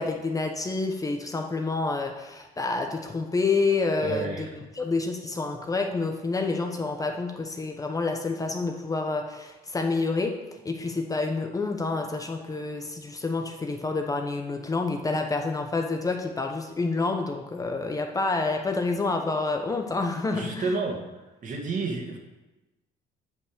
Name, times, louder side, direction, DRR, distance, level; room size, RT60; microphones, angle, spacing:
voice 1, 0.0-4.5 4.7-10.3 10.6-20.8, left 3 dB, 20° left, 4 dB, 0.9 m, -28 dB
voice 2, 4.0-4.5 20.3-21.0 21.4-22.2, right 3 dB, 50° right, 1 dB, 2.0 m, -30 dB
8.4 x 5.4 x 6.6 m, 1.1 s
cardioid pair, 110°, 17 cm